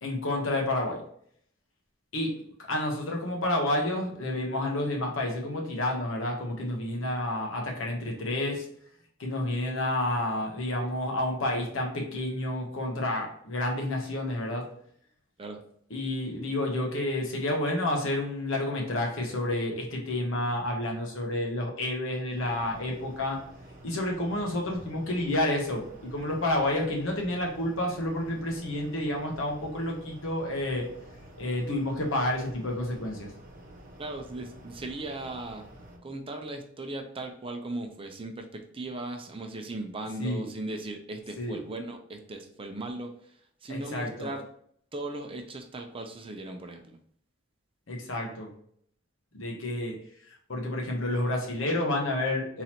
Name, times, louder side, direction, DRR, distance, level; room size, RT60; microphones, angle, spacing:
voice 1, 0.0-1.0 2.1-8.6 9.2-14.7 15.9-23.4 23.8-30.9 31.4-33.3 40.2-40.5 41.4-41.6 43.7-44.3 47.9-48.5 49.3-50.0 50.3-52.6, left 1 dB, 90° left, 0 dB, 1.1 m, -30 dB
sound 1, 22.3-36.0, right 1 dB, 45° right, 1.0 m, -49 dB
voice 2, 34.0-35.6 36.0-43.1 43.6-44.4 44.9-47.0, right 2 dB, 30° right, 4 dB, 0.6 m, -38 dB
3.9 x 3.0 x 4.2 m, 0.65 s
head